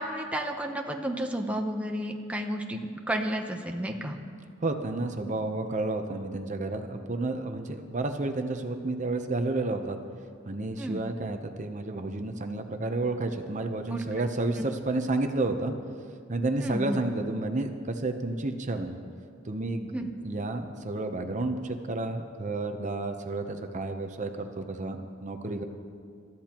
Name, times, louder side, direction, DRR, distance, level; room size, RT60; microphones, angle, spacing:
voice 1, 0.0-4.2 10.8-11.0 13.9-14.0 14.6-14.7 16.6-17.0 19.9-20.1, right 1 dB, 5° right, 2 dB, 0.8 m, -32 dB
voice 2, 4.6-10.0 10.5-15.7 16.3-19.0 19.5-19.9 20.2-25.6, right 2 dB, 40° right, 6 dB, 0.8 m, -31 dB
27.5 x 13.5 x 3.0 m, 2.2 s
head